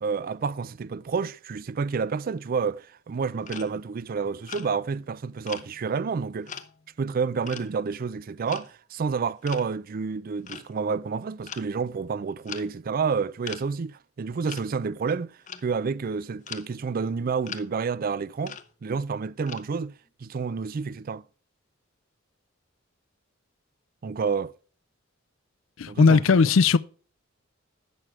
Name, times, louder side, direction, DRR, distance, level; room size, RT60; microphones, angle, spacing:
voice 1, 0.0-6.5 7.0-19.9 20.2-21.2 24.0-24.5 25.9-26.5, right 5 dB, 45° right, 0.4 m, -29 dB
sound 1, 3.5-3.8 4.4-4.8 5.4-6.1 6.5-6.9 7.5-7.8 8.4-8.7 9.5-9.7 10.5-10.8 11.5-11.7 12.0-12.1 12.4-12.7 13.4-13.7 14.5-14.6 15.2-15.7 16.5-16.7 17.4-17.7 18.4-18.7 19.5-19.6, left 7 dB, 40° left, 0.7 m, -40 dB
voice 2, 25.8-26.8, left 4 dB, 75° left, 0.5 m, -18 dB
11.0 x 7.5 x 3.2 m
head